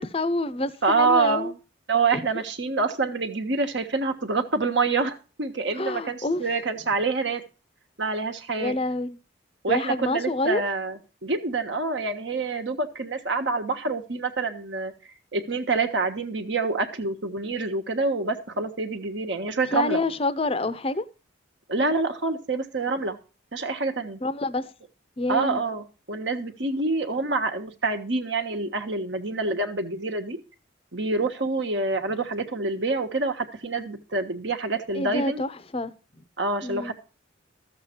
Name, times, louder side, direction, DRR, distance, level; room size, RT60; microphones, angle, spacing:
voice 1, 0.0-1.5 2.1-2.3 5.7-6.5 8.6-9.2 9.7-10.6 19.7-21.1 24.2-24.7 25.2-25.6 34.9-36.3 36.6-36.9, left 2 dB, 30° left, 0.6 m, -27 dB
voice 2, 0.8-1.6 1.9-7.4 8.0-8.8 9.6-14.9 15.3-20.0 21.7-23.2 23.5-24.2 25.3-30.4 30.9-35.4 36.4-36.9, right 3 dB, 60° right, 1.3 m, -27 dB
13.5 x 7.4 x 4.4 m
head